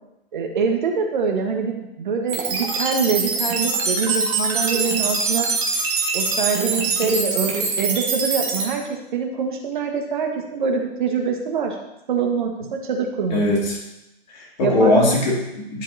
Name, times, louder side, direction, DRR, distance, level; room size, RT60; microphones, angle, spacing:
voice 1, 0.3-5.5 6.1-11.8 12.1-13.4 14.6-15.0, right 5 dB, 50° right, 3 dB, 1.5 m, -24 dB
sound 1, 2.3-8.7, right 4 dB, 30° right, 1.6 m, -23 dB
voice 2, 13.3-13.8 14.3-15.8, left 1 dB, 45° left, -3 dB, 2.8 m, -20 dB
11.0 x 7.1 x 2.8 m, 0.92 s
figure-of-eight pair, 120°, 31 cm